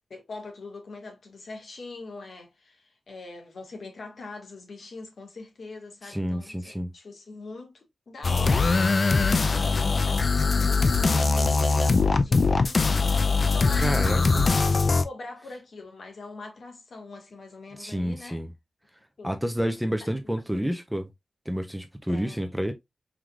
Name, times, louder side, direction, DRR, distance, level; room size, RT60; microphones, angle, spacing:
voice 1, 0.1-9.0 9.6-13.0 13.4-14.4 14.8-18.4 19.2-19.3 20.0-20.2 20.5-20.7 22.1-22.6, left 3 dB, 65° left, 1.5 m, -43 dB
voice 2, 6.0-6.9 13.8-14.5 17.8-18.5 19.2-21.1 21.5-22.7, equal, 5° right, 0.6 m, -29 dB
sound 1, 8.2-15.0, left 4 dB, 45° left, 0.4 m, -22 dB
4.7 x 3.8 x 2.3 m
wide cardioid pair, 160°, 0 cm